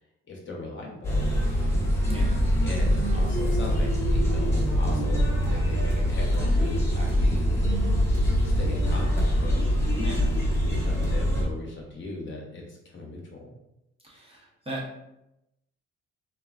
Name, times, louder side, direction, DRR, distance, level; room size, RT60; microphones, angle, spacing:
voice 1, 0.3-1.3 2.6-7.5 8.4-9.7 10.7-13.5, left 2 dB, 40° left, -2 dB, 0.8 m, -38 dB
sound 1, 1.0-11.4, equal, 10° left, 0.9 m, -24 dB
voice 2, 9.9-10.3 14.1-14.4 14.7-15.0, right 1 dB, 20° right, -4 dB, 0.8 m, -35 dB
3.1 x 2.3 x 2.3 m, 0.87 s
cardioid pair, 90°, 30 cm